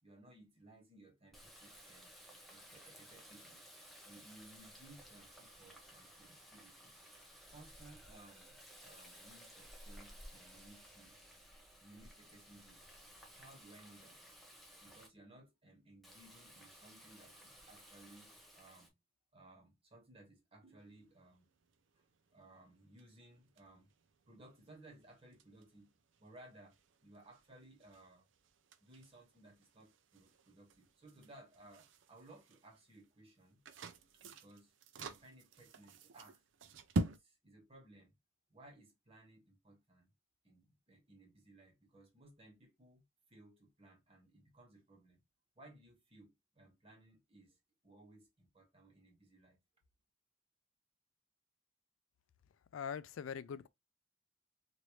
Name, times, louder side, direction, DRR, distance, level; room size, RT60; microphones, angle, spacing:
voice 1, 0.0-2.1 2.5-3.7 4.0-7.0 7.5-8.6 8.8-11.2 11.8-13.0 13.3-14.2 14.8-19.0 19.3-21.5 21.9-23.9 24.2-25.9 26.2-28.3 28.8-33.6 34.2-34.7 35.0-36.4 37.0-38.2 38.5-40.1 40.4-43.0 43.3-45.2 45.6-49.6, right 1 dB, 30° right, 1.2 m, -61 dB
Water tap faucet, 1.3-15.1 16.0-18.9, equal, ahead, 0.7 m, -57 dB
sound 1, 20.8-37.2, right 2 dB, 70° right, 0.5 m, -47 dB
voice 2, 52.7-53.7, left 7 dB, 90° left, 0.3 m, -42 dB
3.1 x 2.6 x 3.0 m
head